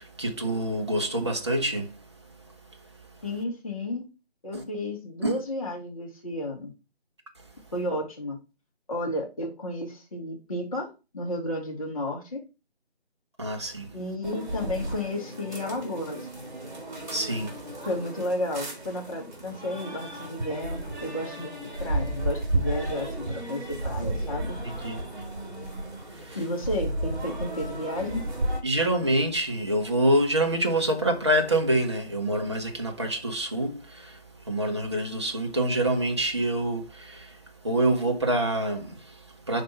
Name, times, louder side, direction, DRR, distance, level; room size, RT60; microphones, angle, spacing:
voice 1, 0.0-2.0 4.5-4.6 5.2-5.4 13.4-13.9 17.1-17.6 24.6-25.0 26.1-26.4 28.6-39.6, right 1 dB, 25° right, 0.8 m, -26 dB
voice 2, 3.2-4.0 4.4-6.7 7.7-8.4 8.9-10.9 11.1-12.4 13.9-16.3 17.8-24.6 26.3-28.2, left 1 dB, 30° left, 1.7 m, -32 dB
sound 1, 14.2-28.6, right 1 dB, 45° right, 2.4 m, -33 dB
5.1 x 4.2 x 5.6 m
figure-of-eight pair, 160°, 32 cm